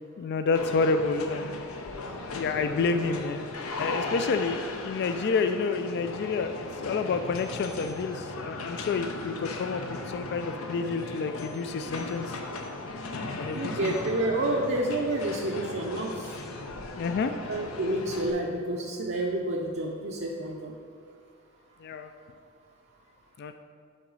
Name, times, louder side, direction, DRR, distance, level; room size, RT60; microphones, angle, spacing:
voice 1, 0.2-1.7 2.3-3.4 3.8-12.4 13.4-13.9 16.9-17.3 21.8-22.1 23.4-23.5, left 4 dB, 50° left, 8 dB, 0.3 m, -29 dB
sound 1, 0.5-18.3, left 3 dB, 85° left, 0.7 m, -37 dB
voice 2, 13.5-16.4 17.5-20.7, right 1 dB, 55° right, -1 dB, 0.6 m, -29 dB
11.0 x 3.8 x 4.7 m, 2.3 s
head